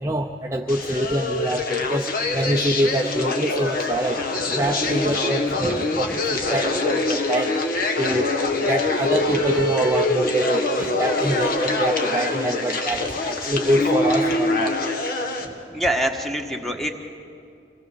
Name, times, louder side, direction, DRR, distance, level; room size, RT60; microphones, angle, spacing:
voice 1, 0.0-4.2 4.5-7.5 8.0-8.3 8.6-14.8, right 1 dB, 15° right, 2 dB, 0.6 m, -25 dB
sound 1, 0.7-15.5, left 2 dB, 55° left, 1.7 m, -24 dB
voice 2, 5.6-6.0 15.4-16.9, equal, ahead, 3 dB, 1.5 m, -26 dB
26.0 x 18.5 x 7.0 m, 2.5 s
head